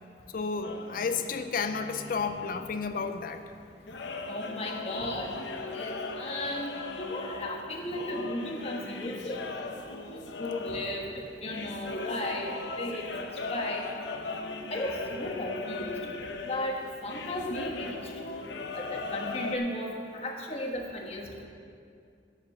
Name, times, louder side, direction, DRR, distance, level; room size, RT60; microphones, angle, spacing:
voice 1, 0.3-3.4, left 5 dB, 50° left, 8 dB, 0.4 m, -32 dB
sound 1, 0.6-19.6, left 3 dB, 90° left, 0.8 m, -39 dB
voice 2, 4.3-9.4 10.1-12.5 12.8-13.0 13.5-13.8 14.7-15.9 16.5-18.0 18.7-21.4, left 1 dB, 35° left, 0 dB, 1.4 m, -35 dB
8.6 x 7.8 x 7.0 m, 2.4 s
head